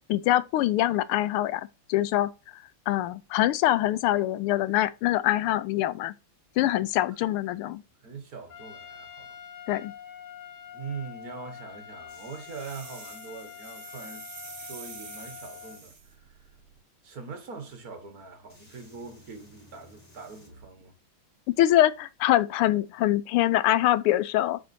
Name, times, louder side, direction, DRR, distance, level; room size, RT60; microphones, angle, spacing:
voice 1, 0.1-6.1 6.6-7.8 9.7-9.9 21.6-24.6, left 14 dB, 85° left, 1.5 m, -24 dB
voice 2, 8.0-9.4 10.7-16.5 17.0-20.9, right 5 dB, 45° right, 1.6 m, -42 dB
Trumpet, 8.5-15.8, left 9 dB, 60° left, 0.8 m, -45 dB
sound 1, 12.1-13.1 13.9-16.8 17.8-17.9 18.5-20.7 22.3-22.4, equal, 30° left, 3.2 m, -56 dB
sound 2, 12.4-16.1, right 7 dB, 70° right, 0.6 m, -46 dB
8.1 x 5.0 x 2.6 m
omnidirectional pair, 2.4 m